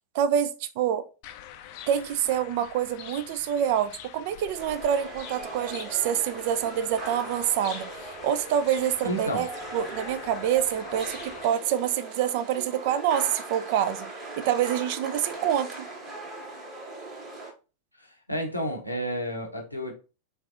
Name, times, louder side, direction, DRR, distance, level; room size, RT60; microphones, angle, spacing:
voice 1, 0.1-1.0 1.9-11.2 11.4-14.1 14.4-15.9, right 9 dB, 50° right, 0.4 m, -26 dB
sound 1, 1.2-11.5, left 10 dB, 45° left, 0.4 m, -45 dB
sound 2, 4.5-17.5, right 2 dB, 25° right, 1.4 m, -40 dB
voice 2, 9.0-9.4 18.0-19.9, equal, 85° left, 0.7 m, -31 dB
3.3 x 3.3 x 2.4 m
figure-of-eight pair, 90°, 0 cm